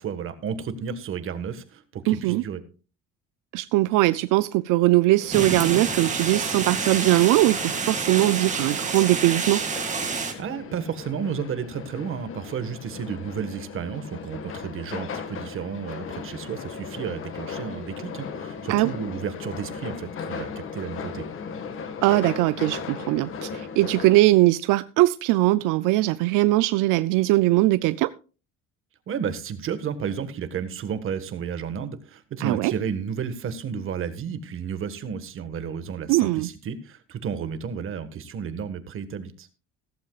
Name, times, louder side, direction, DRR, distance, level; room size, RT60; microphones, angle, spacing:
voice 1, 0.0-2.6 10.4-21.3 29.1-39.5, right 7 dB, 40° right, 10 dB, 1.5 m, -32 dB
voice 2, 2.1-2.4 3.5-9.6 18.7-18.9 22.0-28.1 32.4-32.7 36.1-36.5, right 18 dB, 80° right, 15 dB, 0.5 m, -21 dB
sound 1, 5.2-24.2, left 6 dB, 40° left, 1.6 m, -37 dB
sound 2, 5.3-10.3, right 5 dB, 25° right, 2.2 m, -28 dB
15.5 x 14.0 x 2.4 m, 0.35 s
cardioid pair, 150°, 31 cm